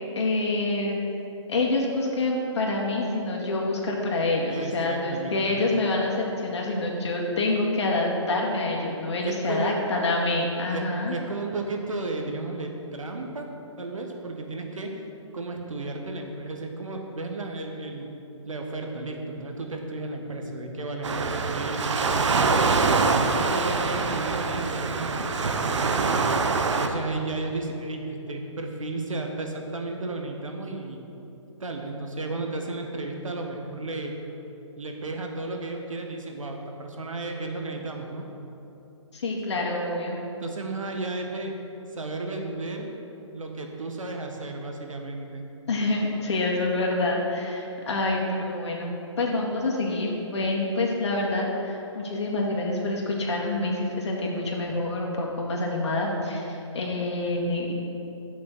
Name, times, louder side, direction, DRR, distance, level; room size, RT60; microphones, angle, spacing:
voice 1, 0.2-1.0 1.5-11.2 39.1-40.2 45.7-57.7, left 2 dB, 60° left, -2 dB, 2.1 m, -27 dB
voice 2, 4.5-5.5 9.2-9.8 10.7-13.5 13.8-15.0 15.3-18.2 18.4-22.7 23.1-26.1 26.8-31.0 31.6-34.2 34.8-38.2 40.4-41.5 41.9-42.9 43.3-45.4, right 2 dB, 85° right, 2 dB, 1.5 m, -33 dB
Waves surf, 21.0-26.9, right 4 dB, 65° right, 0.8 m, -24 dB
8.1 x 6.2 x 6.2 m, 3.0 s
hypercardioid pair, 155°, 16 cm